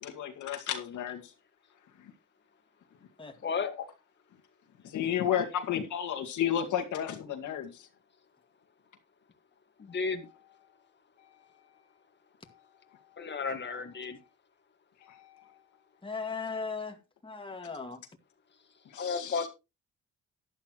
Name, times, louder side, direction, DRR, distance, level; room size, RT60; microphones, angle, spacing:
voice 1, 0.0-1.3 2.0-2.1 3.6-3.7 4.8-7.9 15.0-15.5 18.9-19.5, left 9 dB, 75° left, 2.2 m, -33 dB
voice 2, 9.8-10.3 13.2-14.2 18.9-19.5, left 5 dB, 35° left, 1.9 m, -33 dB
voice 3, 16.0-18.0, left 4 dB, 15° left, 2.1 m, -37 dB
11.5 x 11.5 x 3.1 m
cardioid pair, 90°, 30 cm